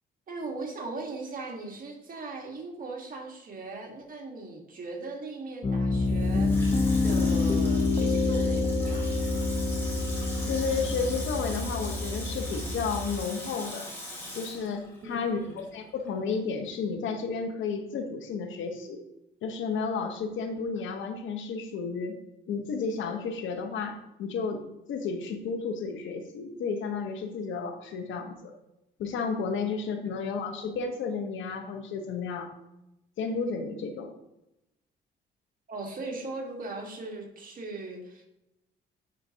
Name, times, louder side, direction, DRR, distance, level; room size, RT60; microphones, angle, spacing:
voice 1, 0.3-6.5 7.0-9.1 15.0-15.6 35.7-38.3, right 3 dB, 45° right, 1 dB, 1.5 m, -39 dB
Piano, 5.6-13.1, left 3 dB, 30° left, 0.9 m, -27 dB
Water tap faucet / Sink (filling or washing), 6.0-15.8 16.1-16.2, left 1 dB, 10° left, 2.1 m, -41 dB
voice 2, 10.5-13.9 14.3-19.0 19.4-22.2 22.5-24.6 24.9-28.5 29.0-32.5 33.2-34.1, left 5 dB, 75° left, 5 dB, 0.9 m, -32 dB
9.4 x 4.0 x 2.8 m, 0.88 s
cardioid pair, 90°, 20 cm